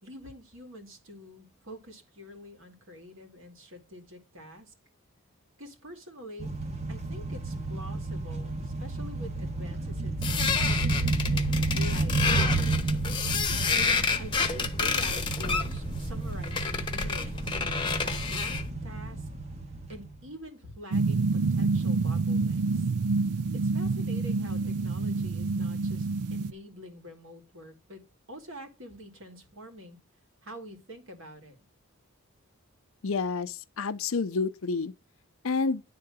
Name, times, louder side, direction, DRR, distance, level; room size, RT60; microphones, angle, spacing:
voice 1, 0.0-4.7 5.6-6.5 6.9-13.2 13.7-19.3 19.9-22.9 23.5-28.0 28.3-30.0 30.4-31.5, equal, 60° right, 2.4 m, -46 dB
sound 1, 6.4-20.2, right 3 dB, 30° right, 1.2 m, -31 dB
sound 2, 10.2-18.7, left 5 dB, 20° left, 0.9 m, -29 dB
sound 3, 20.9-26.5, right 3 dB, 90° right, 0.5 m, -27 dB
voice 2, 33.0-34.9 35.4-35.8, left 4 dB, 65° left, 0.6 m, -29 dB
10.0 x 3.8 x 7.0 m
head